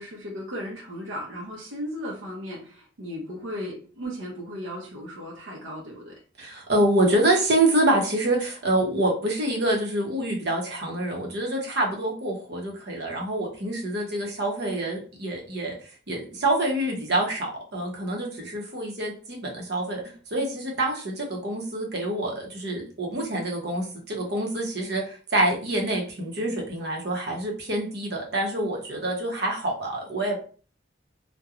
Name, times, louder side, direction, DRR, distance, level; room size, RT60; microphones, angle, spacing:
voice 1, 0.0-6.1, equal, 90° right, -3 dB, 0.6 m, -36 dB
voice 2, 6.4-15.7 16.1-20.0 20.3-30.4, right 1 dB, 55° right, -1 dB, 0.8 m, -26 dB
2.8 x 2.2 x 2.4 m, 0.40 s
head